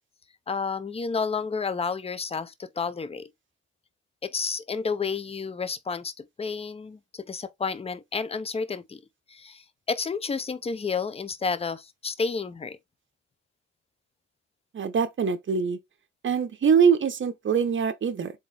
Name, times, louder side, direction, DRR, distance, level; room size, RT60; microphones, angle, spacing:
voice 1, 0.5-3.3 4.2-9.0 9.3-12.8, left 5 dB, 20° left, 0.6 m, -31 dB
voice 2, 14.7-15.8 16.2-18.3, right 6 dB, 40° right, 0.9 m, -23 dB
3.9 x 3.6 x 3.3 m
cardioid pair, 90°, 30 cm